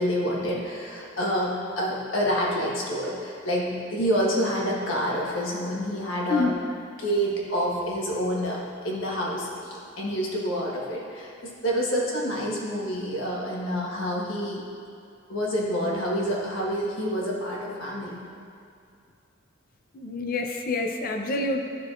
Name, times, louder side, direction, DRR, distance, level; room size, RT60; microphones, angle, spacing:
voice 1, 0.0-6.5 7.0-14.6 15.3-18.2, equal, 70° left, -3 dB, 1.4 m, -28 dB
voice 2, 19.9-21.6, left 3 dB, 45° left, 4 dB, 0.6 m, -27 dB
12.5 x 4.7 x 2.5 m, 2.5 s
head